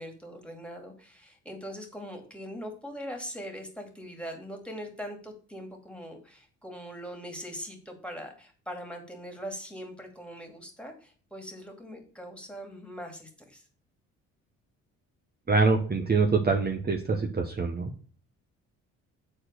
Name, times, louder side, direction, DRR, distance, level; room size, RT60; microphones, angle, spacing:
voice 1, 0.0-13.6, equal, 5° left, 4 dB, 2.5 m, -41 dB
voice 2, 15.5-18.0, right 4 dB, 30° right, 3 dB, 1.1 m, -25 dB
7.6 x 4.4 x 6.4 m, 0.41 s
cardioid pair, 90°, 30 cm